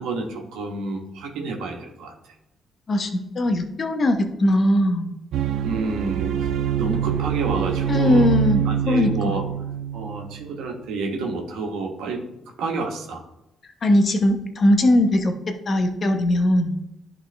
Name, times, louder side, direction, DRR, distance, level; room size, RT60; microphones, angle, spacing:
voice 1, 0.0-2.3 5.6-6.5 6.8-8.3 8.6-9.4 9.9-12.2 12.6-13.2, right 3 dB, 90° right, 2 dB, 1.3 m, -29 dB
voice 2, 2.9-5.1 7.9-9.3 13.8-16.7, left 1 dB, 45° left, 5 dB, 1.0 m, -20 dB
sound 1, 5.3-10.6, right 10 dB, 70° right, 0.5 m, -25 dB
11.0 x 3.6 x 3.4 m, 0.89 s
cardioid pair, 90°, 0 cm